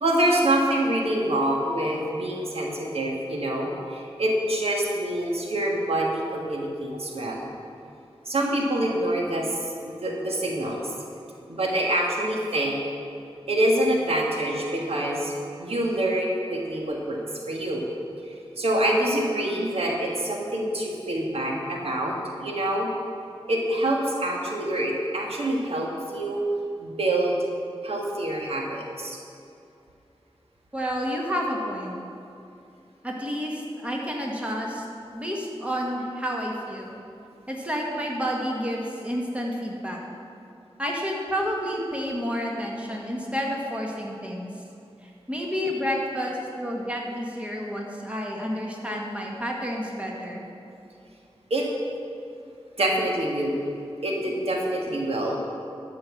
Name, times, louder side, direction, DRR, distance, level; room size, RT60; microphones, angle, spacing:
voice 1, 0.0-7.5 8.2-9.5 9.8-10.9 11.5-12.8 13.5-15.3 15.6-17.2 17.5-17.8 18.2-22.9 23.5-26.4 26.8-27.4 27.8-29.2 51.5-51.7 52.8-53.6 54.0-55.4, right 1 dB, 80° right, -1 dB, 1.6 m, -26 dB
voice 2, 30.7-31.9 33.0-34.8 35.1-37.0 37.5-40.0 40.8-44.5 45.0-50.4, equal, 10° right, -2 dB, 1.8 m, -30 dB
12.0 x 5.8 x 7.3 m, 2.6 s
wide cardioid pair, 80°, 10 cm